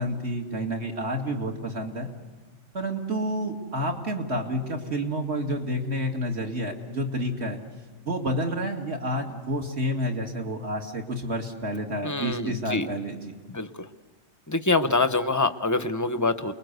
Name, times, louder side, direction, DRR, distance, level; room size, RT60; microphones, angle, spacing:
voice 1, 0.0-2.1 2.7-7.6 8.0-13.3, equal, 55° right, 2 dB, 2.7 m, -29 dB
voice 2, 12.0-12.9 13.5-13.9 14.5-16.5, left 3 dB, 15° left, 10 dB, 0.8 m, -25 dB
29.5 x 21.5 x 8.2 m, 1.4 s
omnidirectional pair, 1.3 m